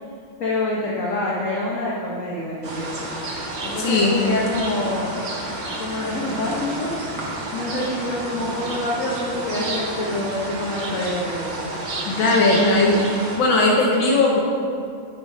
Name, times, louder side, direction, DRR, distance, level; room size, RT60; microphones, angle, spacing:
voice 1, 0.4-2.9 3.6-5.3 5.8-6.9 7.5-11.6, left 2 dB, 50° left, -4 dB, 1.0 m, -26 dB
sound 1, 2.6-13.4, right 1 dB, 40° right, 1.3 m, -31 dB
voice 2, 3.8-4.1 12.1-13.0 13.3-14.4, left 2 dB, 75° left, -2 dB, 1.6 m, -18 dB
8.1 x 5.5 x 5.0 m, 2.4 s
omnidirectional pair, 2.2 m